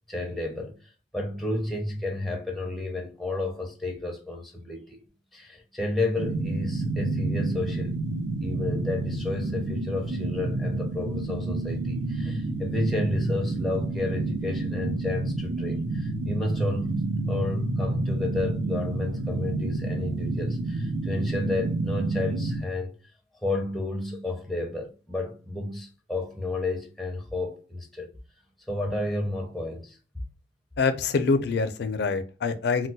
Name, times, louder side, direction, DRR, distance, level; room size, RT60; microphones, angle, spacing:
voice 1, 0.1-0.8 1.1-5.0 5.3-8.0 8.4-22.9 23.4-28.1 28.7-30.0, left 2 dB, ahead, 0.5 m, -31 dB
sound 1, 6.2-22.6, right 2 dB, 65° right, 0.6 m, -29 dB
voice 2, 30.8-32.9, left 4 dB, 60° left, 0.4 m, -25 dB
2.2 x 2.1 x 3.9 m
head